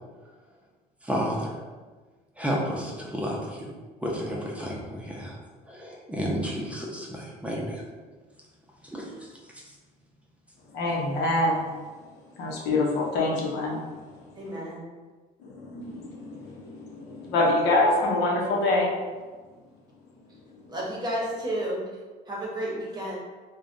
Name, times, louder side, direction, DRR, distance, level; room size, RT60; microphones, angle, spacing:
voice 1, 1.0-1.5 2.4-3.7 4.0-5.4 5.7-7.8 8.8-9.3, equal, 10° right, -3 dB, 0.5 m, -31 dB
voice 2, 10.7-11.7 12.4-13.8 15.4-18.9, left 2 dB, 90° left, -2 dB, 0.7 m, -25 dB
voice 3, 14.4-14.8 20.7-21.9 22.3-23.2, right 1 dB, 25° right, -4 dB, 0.9 m, -31 dB
3.2 x 2.2 x 2.5 m, 1.4 s
cardioid pair, 110°, 17 cm